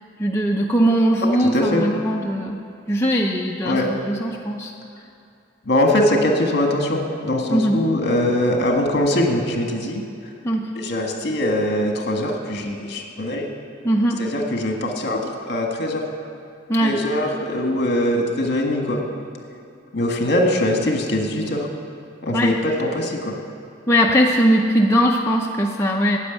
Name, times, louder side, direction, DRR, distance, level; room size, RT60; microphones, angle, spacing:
voice 1, 0.2-2.6 2.9-3.8 4.1-4.7 7.5-7.8 10.4-10.7 13.8-14.2 16.7-17.0 22.3-22.6 23.9-26.2, equal, 15° left, -2 dB, 0.6 m, -19 dB
voice 2, 1.3-1.8 3.6-3.9 5.6-10.0 10.7-13.5 14.2-16.0 16.8-19.0 19.9-21.7 22.2-23.4, left 1 dB, 55° left, 2 dB, 1.6 m, -22 dB
9.8 x 8.0 x 9.3 m, 2.5 s
head